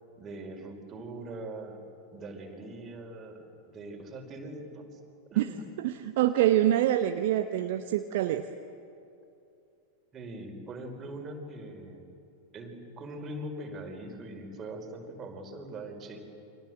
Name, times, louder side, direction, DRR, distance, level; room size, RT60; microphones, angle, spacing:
voice 1, 0.2-1.8 2.1-5.0 5.3-5.6 10.1-12.0 12.5-16.2, right 1 dB, 25° right, 3 dB, 4.9 m, -42 dB
voice 2, 5.8-8.5, right 13 dB, 50° right, 8 dB, 1.0 m, -25 dB
29.0 x 24.5 x 7.9 m, 2.7 s
figure-of-eight pair, 90°, 0 cm